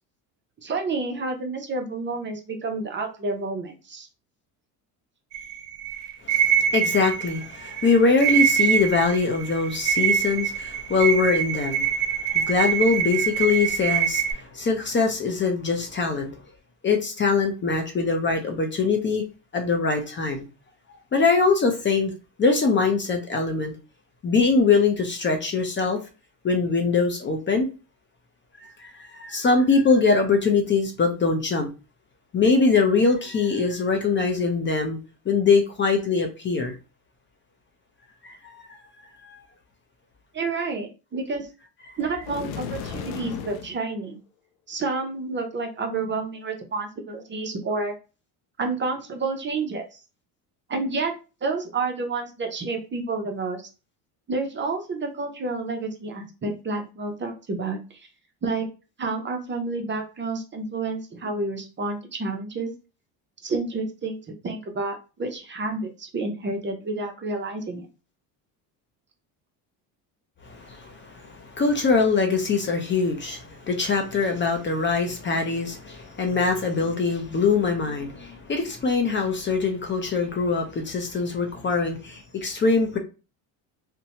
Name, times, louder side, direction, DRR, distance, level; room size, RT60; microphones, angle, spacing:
voice 1, 0.6-4.1 40.3-41.5 42.0-44.2 44.7-47.9 48.6-49.8 50.7-51.1 51.4-53.6 54.3-57.8 58.4-58.7 59.0-62.7 63.4-67.9, right 3 dB, 30° right, 0.6 m, -29 dB
sound 1, 5.3-14.3, right 8 dB, 75° right, 0.6 m, -24 dB
voice 2, 6.2-16.3 16.8-19.2 19.5-20.5 21.1-22.1 22.4-23.7 24.2-26.0 26.4-27.7 28.8-31.7 32.3-35.0 35.3-36.7 38.2-38.4 38.7-38.8 41.9-42.0 70.4-83.0, left 4 dB, 30° left, 0.6 m, -23 dB
sound 2, 42.2-43.8, left 8 dB, 90° left, 0.5 m, -34 dB
2.7 x 2.2 x 2.8 m
supercardioid pair, 95°, 41 cm